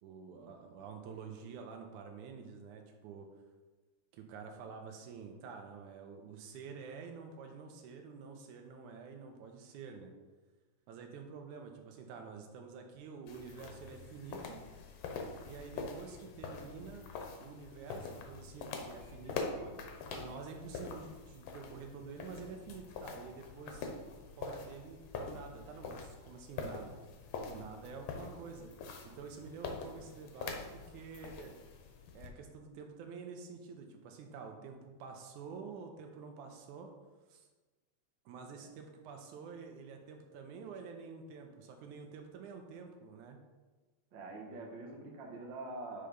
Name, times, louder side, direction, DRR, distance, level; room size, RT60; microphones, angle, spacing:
voice 1, 0.0-3.3 4.1-10.1 10.9-14.6 15.4-17.1 17.4-23.9 24.4-27.0 27.4-28.7 29.0-31.5 32.1-36.9 37.3-37.5 38.3-43.4, right 5 dB, 85° right, 4 dB, 2.3 m, -48 dB
sound 1, 13.3-32.3, left 4 dB, 70° left, 1.7 m, -45 dB
voice 2, 44.1-46.1, right 2 dB, 60° right, 1 dB, 1.3 m, -45 dB
5.7 x 5.0 x 5.2 m, 1.2 s
omnidirectional pair, 3.4 m